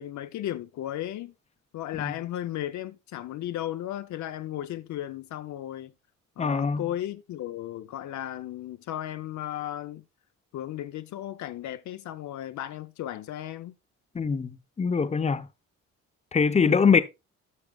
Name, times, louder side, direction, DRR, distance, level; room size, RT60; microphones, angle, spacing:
voice 1, 0.0-1.3 1.7-5.9 6.4-10.0 10.5-13.7, left 12 dB, 70° left, 0.6 m, -35 dB
voice 2, 6.4-6.8 14.1-14.5 14.8-15.4 16.3-17.0, left 5 dB, 20° left, 0.7 m, -23 dB
12.0 x 6.0 x 2.3 m
cardioid pair, 90°, 30 cm